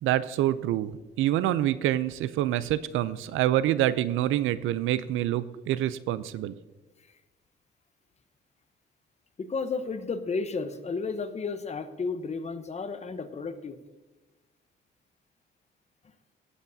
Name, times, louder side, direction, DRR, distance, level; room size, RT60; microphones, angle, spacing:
voice 1, 0.0-6.5, right 13 dB, 85° right, 16 dB, 0.5 m, -26 dB
voice 2, 9.4-13.8, left 4 dB, 35° left, 10 dB, 0.9 m, -32 dB
17.5 x 8.0 x 2.7 m, 1.2 s
cardioid pair, 90°, 20 cm